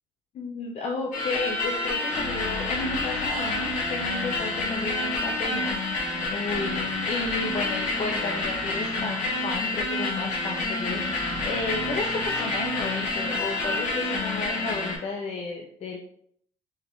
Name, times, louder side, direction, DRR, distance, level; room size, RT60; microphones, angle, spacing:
voice 1, 0.3-16.0, left 3 dB, 55° left, 0 dB, 0.6 m, -33 dB
sound 1, 1.1-15.0, left 2 dB, 75° left, 1.0 m, -28 dB
3.9 x 3.3 x 2.6 m, 0.65 s
hypercardioid pair, 55°, 13 cm